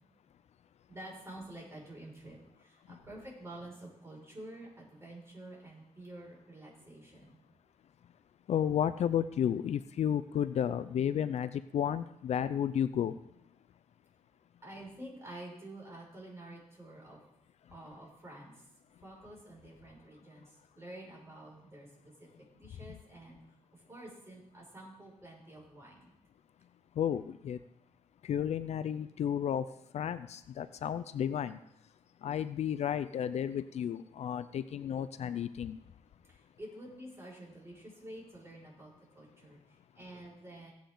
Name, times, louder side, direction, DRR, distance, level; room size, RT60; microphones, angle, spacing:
voice 1, 0.9-7.4 14.6-17.2 17.7-18.7 19.0-26.1 36.2-40.7, right 1 dB, 20° right, -3 dB, 5.8 m, -49 dB
voice 2, 8.5-13.1 27.0-27.6 28.3-29.6 29.9-31.6 32.2-35.8, left 9 dB, 60° left, 13 dB, 0.5 m, -32 dB
17.0 x 8.6 x 3.9 m, 0.79 s
cardioid pair, 110°, 12 cm